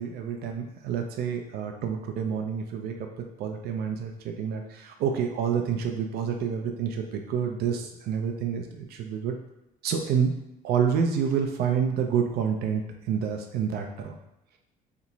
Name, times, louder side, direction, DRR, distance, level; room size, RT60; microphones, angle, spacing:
voice 1, 0.0-9.4 9.8-10.3 10.6-14.1, right 7 dB, 70° right, 4 dB, 0.5 m, -28 dB
2.9 x 2.2 x 3.9 m, 0.91 s
cardioid pair, 110°, 17 cm